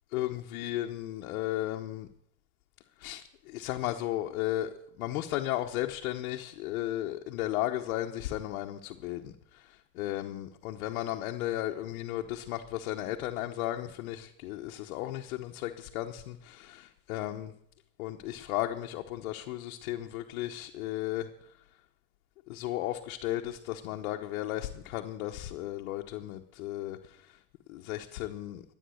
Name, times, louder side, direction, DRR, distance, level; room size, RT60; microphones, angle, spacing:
voice 1, 0.1-2.1 3.0-17.5 18.0-21.3 22.5-27.3 27.7-28.6, left 14 dB, 85° left, 2 dB, 1.0 m, -35 dB
13.0 x 9.1 x 7.8 m, 0.70 s
supercardioid pair, 100°, 41 cm